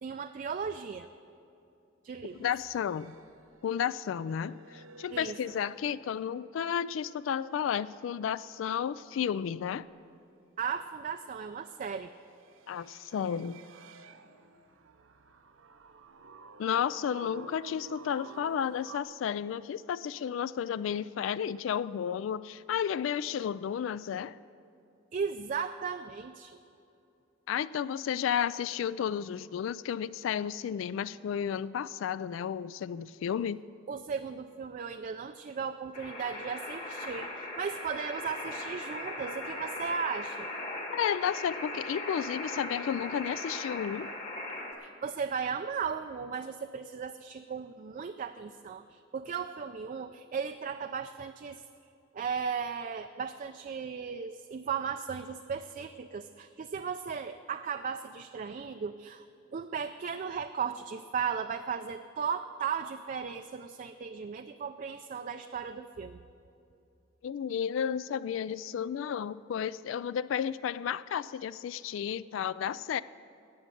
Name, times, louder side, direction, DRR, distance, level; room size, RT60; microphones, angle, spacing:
voice 1, 0.0-1.1 2.0-2.5 5.1-5.4 10.6-12.1 25.1-26.6 33.9-40.5 44.8-51.6 52.1-59.2 59.5-66.2, right 6 dB, 45° right, 8 dB, 0.4 m, -36 dB
sound 1, 2.2-6.6 6.9-8.1 11.4-19.0, right 4 dB, 85° right, 0.7 m, -53 dB
voice 2, 2.4-3.2 3.6-9.9 12.7-13.6 16.6-24.4 27.5-33.6 40.9-44.1 67.2-73.0, left 8 dB, 75° left, 18 dB, 0.3 m, -32 dB
sound 2, 35.9-44.7, left 2 dB, 40° left, 1.6 m, -39 dB
18.0 x 6.4 x 7.7 m, 2.7 s
head